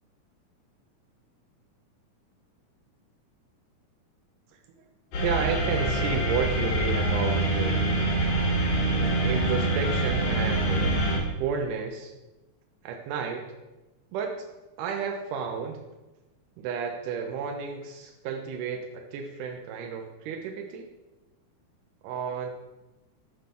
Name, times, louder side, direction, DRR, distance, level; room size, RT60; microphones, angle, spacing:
sound 1, 5.1-11.2, right 2 dB, 85° left, 3.3 m, -25 dB
voice 1, 5.2-7.9 9.2-11.1 11.4-12.2 12.8-13.5 14.1-14.5 14.8-15.8 16.6-20.9 22.0-22.5, right 6 dB, 85° right, 3 dB, 2.2 m, -32 dB
7.8 x 3.7 x 5.7 m, 1.1 s
omnidirectional pair, 3.6 m